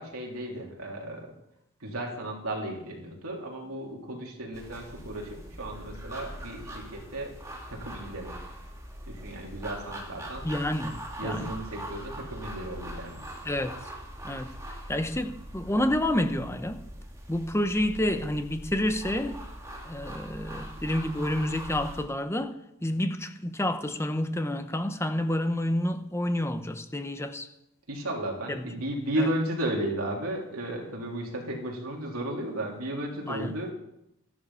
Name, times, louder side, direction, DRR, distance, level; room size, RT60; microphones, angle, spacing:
voice 1, 0.0-1.3 1.8-7.3 7.7-8.4 9.1-10.5 11.2-13.2 27.9-33.7, right 1 dB, 70° right, 3.5 m, -34 dB
sound 1, 4.5-22.0, right 1 dB, 15° right, 2.4 m, -42 dB
voice 2, 10.4-11.4 13.4-13.7 14.2-14.5 14.9-16.8 17.3-19.4 19.8-22.5 22.8-27.5 28.5-28.6 29.2-29.3 33.3-33.5, left 1 dB, 10° left, 0.9 m, -29 dB
13.5 x 11.0 x 5.7 m
head